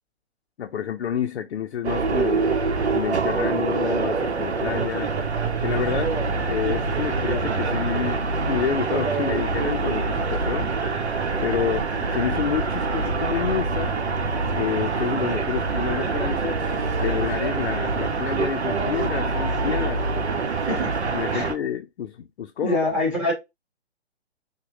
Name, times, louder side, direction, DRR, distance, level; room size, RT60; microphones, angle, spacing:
voice 1, 0.6-2.6 2.9-5.1 5.6-10.7 11.4-13.9 14.5-16.6 17.0-20.0 20.7-20.8 21.1-22.8, left 9 dB, 70° left, 0.5 m, -29 dB
sound 1, 1.8-21.5, right 4 dB, 90° right, 0.7 m, -25 dB
voice 2, 22.6-23.3, left 1 dB, 5° right, 1.4 m, -24 dB
2.9 x 2.1 x 2.9 m
hypercardioid pair, 140°, 33 cm